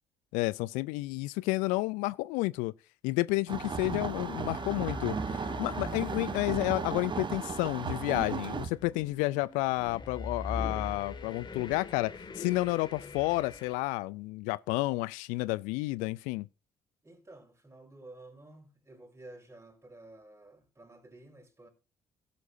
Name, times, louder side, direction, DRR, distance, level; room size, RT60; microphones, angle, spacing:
voice 1, 0.3-2.7 3.0-5.2 5.6-16.5, left 21 dB, 75° left, 0.4 m, -31 dB
sound 1, 3.5-13.8, left 4 dB, 35° left, 2.1 m, -43 dB
sound 2, 3.5-8.7, right 5 dB, 35° right, 1.2 m, -35 dB
voice 2, 17.0-21.7, right 2 dB, 20° right, 4.9 m, -52 dB
17.0 x 8.5 x 2.7 m
hypercardioid pair, 55°, 13 cm